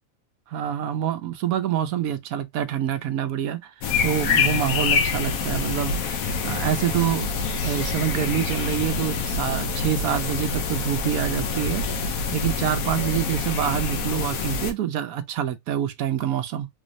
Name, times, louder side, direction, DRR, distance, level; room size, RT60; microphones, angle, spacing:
voice 1, 0.5-3.7 4.0-7.3 7.6-16.7, right 10 dB, 85° right, 1.1 m, -26 dB
sound 1, 3.8-14.7, left 4 dB, 75° left, 1.2 m, -26 dB
3.7 x 3.2 x 2.6 m
omnidirectional pair, 1.5 m